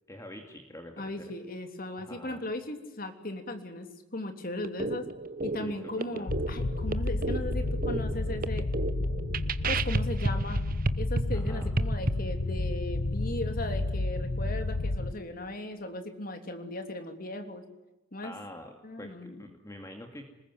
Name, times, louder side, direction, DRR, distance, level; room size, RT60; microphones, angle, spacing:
voice 1, 0.1-1.3 2.0-2.4 5.6-6.3 11.3-11.7 18.2-20.3, left 1 dB, 15° left, 4 dB, 2.3 m, -46 dB
voice 2, 1.0-5.0 5.4-8.7 9.7-10.6 11.0-17.6 18.1-18.3 18.8-19.4, left 1 dB, 45° left, 6 dB, 3.2 m, -37 dB
sound 1, 4.6-12.1, right 3 dB, 45° right, 1.0 m, -32 dB
sound 2, 6.3-15.1, left 2 dB, 85° left, 1.0 m, -31 dB
26.5 x 20.5 x 9.6 m, 1.0 s
head